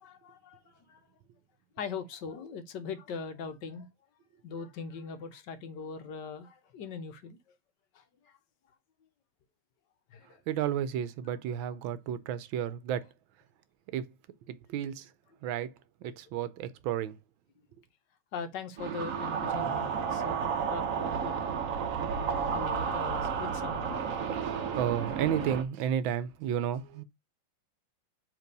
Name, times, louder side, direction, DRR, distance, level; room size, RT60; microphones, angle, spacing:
voice 1, 0.0-1.0 1.8-3.9 4.4-7.6 7.9-8.3 10.1-10.4 18.3-21.4 22.3-24.1, left 5 dB, 65° left, 1.3 m, -41 dB
voice 2, 10.5-13.1 13.9-14.1 14.5-15.1 15.4-15.7 16.0-17.2 24.4-27.0, right 9 dB, 80° right, 1.4 m, -32 dB
sound 1, 18.8-25.6, right 6 dB, 60° right, 0.9 m, -32 dB
7.4 x 3.3 x 5.2 m
omnidirectional pair, 2.2 m